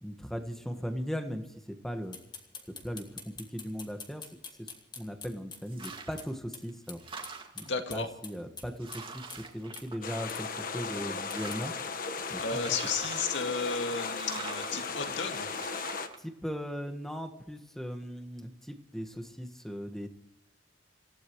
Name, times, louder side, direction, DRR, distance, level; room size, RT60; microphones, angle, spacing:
voice 1, 0.0-2.2 2.8-4.2 4.6-4.7 5.0-7.0 7.5-7.7 7.9-9.2 9.5-11.7 12.3-12.6 16.2-20.1, equal, ahead, 7 dB, 1.5 m, -38 dB
sound 1, 2.1-6.3 6.5-6.6 6.9-7.0 7.2-9.0 9.3-9.4 9.7-9.9 10.3-10.4 11.3-11.6, left 5 dB, 25° left, 2.4 m, -45 dB
sound 2, 5.7-6.3 6.7-7.8 8.4-8.5 8.8-10.5 10.9-11.8 12.5-13.4 14.1-14.7 15.5-16.2, right 4 dB, 30° right, 2.2 m, -45 dB
voice 2, 7.6-8.1 12.4-15.5, left 4 dB, 80° left, 5 dB, 2.2 m, -33 dB
sound 3, 10.0-16.1, left 4 dB, 50° left, 1.3 m, -36 dB
28.0 x 16.0 x 3.2 m, 0.84 s
head